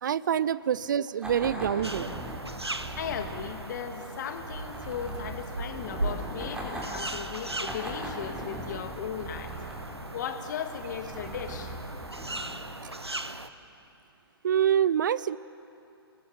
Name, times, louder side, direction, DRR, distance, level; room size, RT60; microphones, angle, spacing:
voice 1, 0.0-2.1 14.4-15.4, right 9 dB, 50° right, 19 dB, 0.5 m, -26 dB
sound 1, 1.2-13.4, right 1 dB, 5° right, 3.4 m, -40 dB
sound 2, 1.8-13.5, right 2 dB, 90° right, 1.0 m, -38 dB
voice 2, 3.0-9.5 10.1-11.7, left 8 dB, 45° left, 7 dB, 1.9 m, -37 dB
29.5 x 20.0 x 7.1 m, 2.7 s
figure-of-eight pair, 120°, 13 cm